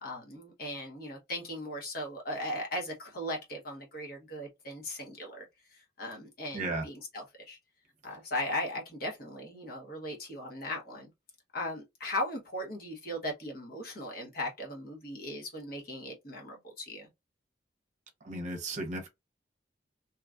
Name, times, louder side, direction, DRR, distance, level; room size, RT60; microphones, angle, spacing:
voice 1, 0.0-5.4 6.0-7.6 8.0-11.1 11.5-17.1, left 1 dB, 55° left, 1.1 m, -38 dB
voice 2, 6.5-6.8 18.2-19.1, right 2 dB, 40° right, 0.7 m, -34 dB
2.9 x 2.3 x 2.4 m
head